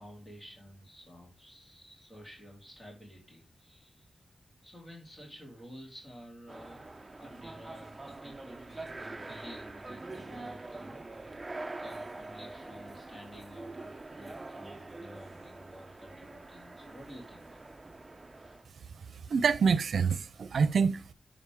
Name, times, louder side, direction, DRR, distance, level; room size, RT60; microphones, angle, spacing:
voice 1, 0.0-4.1 4.6-6.8 7.2-11.0 11.8-17.6, equal, 30° left, 3.8 m, -51 dB
sound 1, 6.5-18.7, right 2 dB, 20° right, 0.7 m, -45 dB
voice 2, 19.0-21.1, right 5 dB, 85° right, 0.6 m, -27 dB
10.0 x 5.0 x 3.6 m
wide cardioid pair, 150°, 0 cm